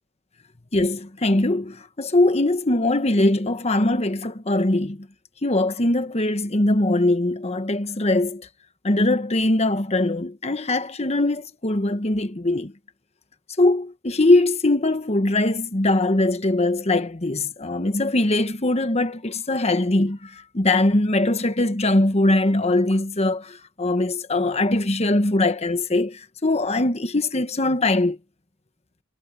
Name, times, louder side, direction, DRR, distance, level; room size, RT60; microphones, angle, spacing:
voice 1, 0.7-5.1 5.4-8.5 8.8-12.7 13.6-28.2, left 2 dB, 30° left, 1.2 m, -21 dB
head